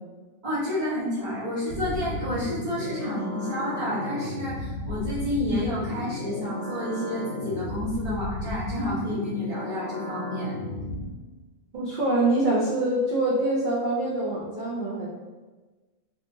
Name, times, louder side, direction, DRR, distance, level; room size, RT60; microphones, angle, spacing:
voice 1, 0.4-10.5, left 1 dB, 35° right, -14 dB, 0.9 m, -30 dB
sound 1, 1.7-11.1, left 2 dB, 90° left, 1.0 m, -34 dB
voice 2, 11.7-15.1, right 2 dB, 65° right, -5 dB, 0.5 m, -25 dB
2.8 x 2.3 x 2.5 m, 1.2 s
omnidirectional pair, 1.4 m